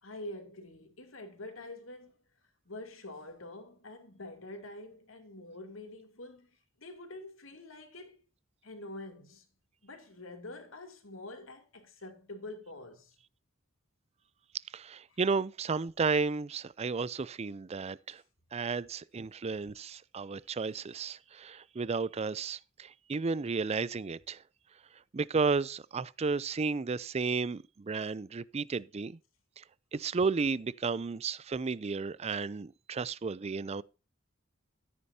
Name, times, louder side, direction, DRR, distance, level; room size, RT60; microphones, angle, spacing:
voice 1, 0.0-2.1 2.7-6.5 6.8-8.2 8.6-9.4 9.8-13.1 15.1-15.2, left 2 dB, 90° left, 2.8 m, -46 dB
voice 2, 14.7-18.2 18.5-24.4 25.1-29.2 29.6-29.7 29.9-33.8, right 4 dB, 30° right, 0.4 m, -33 dB
13.5 x 9.6 x 2.7 m
head